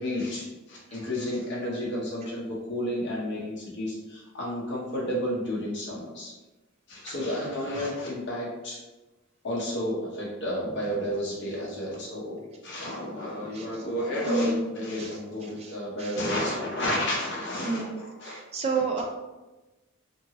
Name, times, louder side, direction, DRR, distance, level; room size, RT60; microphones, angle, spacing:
voice 1, 0.0-6.3 6.9-8.8 9.4-12.4 12.6-18.4, equal, 55° left, -6 dB, 0.7 m, -31 dB
voice 2, 13.5-13.8 14.3-14.7 15.0-15.1 15.6-16.2 17.6-18.0 18.2-19.0, right 3 dB, 30° right, 1 dB, 0.3 m, -30 dB
2.7 x 2.6 x 2.8 m, 1.1 s
head